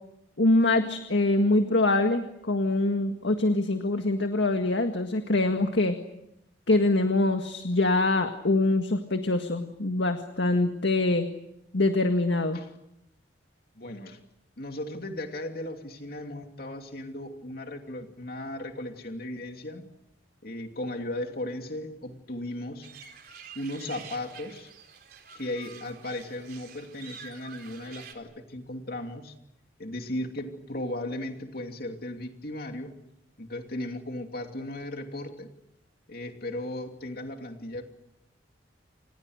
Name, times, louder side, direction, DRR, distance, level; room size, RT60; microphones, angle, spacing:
voice 1, 0.4-6.0 6.7-11.3 11.7-12.6, left 2 dB, 70° left, 6 dB, 1.9 m, -24 dB
voice 2, 13.8-14.2 14.6-19.8 20.4-22.9 23.5-24.7 25.3-29.3 29.8-33.0 33.4-35.5 36.1-37.8, left 1 dB, 50° left, 4 dB, 2.8 m, -36 dB
sound 1, 22.8-28.1, right 7 dB, 50° right, 4.1 m, -47 dB
29.5 x 28.0 x 6.6 m, 0.82 s
head